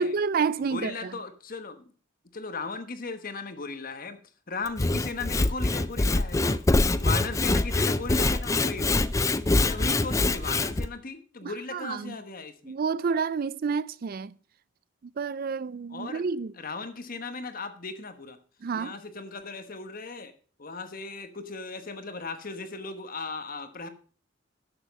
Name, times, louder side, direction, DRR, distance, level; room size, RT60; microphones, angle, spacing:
voice 1, 0.0-1.2 11.4-12.2 12.6-14.4 15.0-16.5 18.6-19.0, right 5 dB, 50° right, 0.4 m, -29 dB
voice 2, 0.6-1.9 2.3-4.2 4.5-6.6 7.0-9.0 9.6-12.7 15.9-16.2 16.6-18.4 18.7-20.3 20.6-23.9, left 4 dB, 45° left, 1.2 m, -37 dB
Sawing / Wood, 4.7-10.9, left 2 dB, 15° left, 0.4 m, -24 dB
12.0 x 6.9 x 5.3 m
head